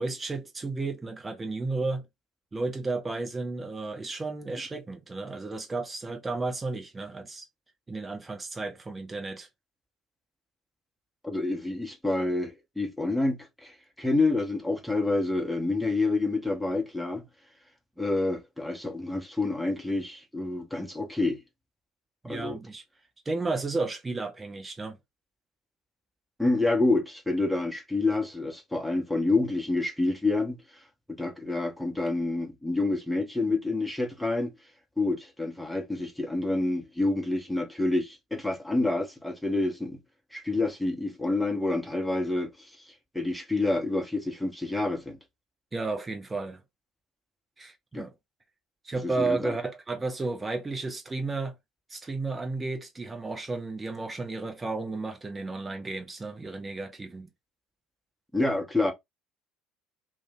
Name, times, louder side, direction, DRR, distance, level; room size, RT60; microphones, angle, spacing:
voice 1, 0.0-2.0 2.5-7.4 7.9-9.5 22.2-22.8 23.3-25.0 45.7-46.6 47.6-48.1 48.8-51.5 51.9-57.3, right 3 dB, 20° right, 0.7 m, -33 dB
voice 2, 11.2-17.3 18.0-21.4 22.3-22.6 26.4-30.6 31.1-34.5 35.0-40.0 40.3-42.5 43.1-45.2 47.9-48.1 49.0-49.5 58.3-58.9, left 2 dB, ahead, 1.0 m, -28 dB
2.5 x 2.3 x 3.8 m
figure-of-eight pair, 60°, 0 cm